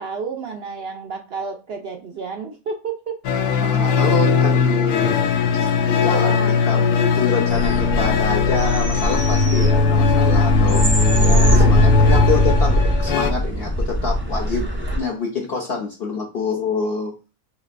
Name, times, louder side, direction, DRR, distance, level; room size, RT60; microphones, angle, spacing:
voice 1, 0.0-3.2 6.0-6.5 7.9-8.0 11.1-11.7, right 5 dB, 65° right, 4 dB, 0.6 m, -30 dB
sound 1, 3.2-13.3, left 5 dB, 90° left, 1.1 m, -19 dB
voice 2, 3.6-5.2 5.5-6.4 6.7-10.8 11.6-14.7 14.9-17.1, left 4 dB, 55° left, 1 dB, 0.7 m, -26 dB
sound 2, 7.5-15.0, equal, 15° right, 0.5 m, -21 dB
5.1 x 3.0 x 2.5 m, 0.32 s
omnidirectional pair, 1.6 m